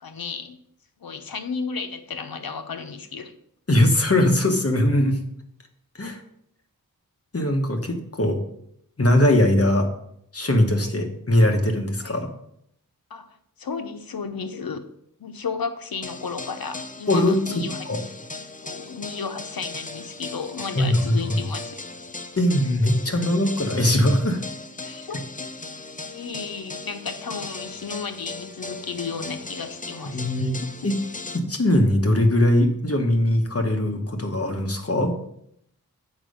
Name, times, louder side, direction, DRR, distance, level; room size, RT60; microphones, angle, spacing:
voice 1, 0.0-0.6 1.0-3.3 10.8-11.1 12.0-12.2 13.1-14.9 15.2-17.9 18.6-21.8 24.8-25.2 26.1-30.2, left 5 dB, 80° left, 8 dB, 0.8 m, -33 dB
voice 2, 3.7-5.2 6.0-6.2 7.3-8.4 9.0-9.9 10.3-12.3 17.1-18.0 20.8-21.4 22.4-24.4 30.1-30.9 31.3-35.1, left 1 dB, 40° left, 4 dB, 1.2 m, -21 dB
sound 1, 16.0-31.4, left 3 dB, 25° left, 0.6 m, -37 dB
7.4 x 5.2 x 5.0 m, 0.73 s
wide cardioid pair, 70°, 35 cm